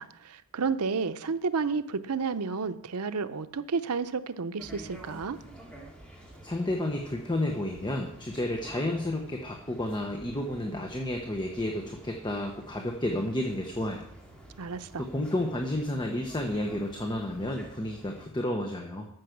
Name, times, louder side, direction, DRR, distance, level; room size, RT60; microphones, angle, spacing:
voice 1, 0.0-5.4 14.6-15.0, right 5 dB, 90° right, 12 dB, 0.7 m, -31 dB
sound 1, 4.6-18.3, right 1 dB, 5° left, 2.3 m, -49 dB
voice 2, 6.4-14.0 15.0-19.1, left 1 dB, 20° left, 2 dB, 1.1 m, -31 dB
13.5 x 6.2 x 6.0 m, 0.72 s
head